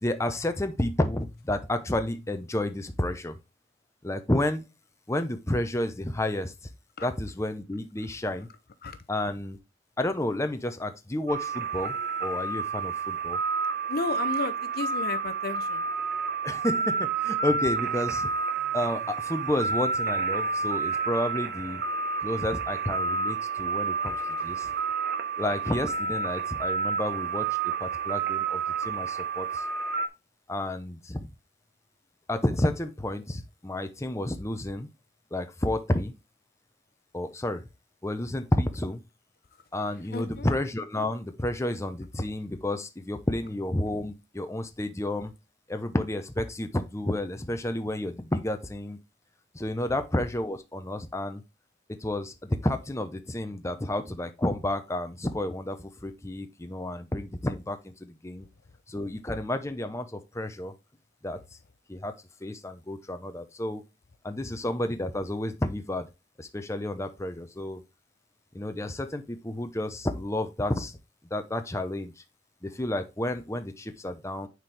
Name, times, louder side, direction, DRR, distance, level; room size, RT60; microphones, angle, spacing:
voice 1, 0.0-3.4 4.0-4.7 5.1-6.7 7.0-8.5 9.1-9.6 10.0-11.9 12.2-13.4 16.4-18.3 18.7-21.8 22.2-24.7 25.4-29.7 30.5-31.3 32.3-34.9 35.3-36.1 37.1-37.7 38.0-39.0 39.7-45.3 45.7-49.0 49.5-51.4 51.9-58.5 58.9-60.7 61.2-61.6 61.9-62.1 62.4-63.8 64.2-66.1 66.4-67.8 68.5-71.0 71.3-72.1 72.6-74.5, left 1 dB, 15° left, 0.7 m, -31 dB
sound 1, 11.3-30.1, right 5 dB, 55° right, 0.9 m, -30 dB
voice 2, 13.9-15.8 40.1-40.5, left 4 dB, 50° left, 0.6 m, -33 dB
9.4 x 4.4 x 3.3 m
head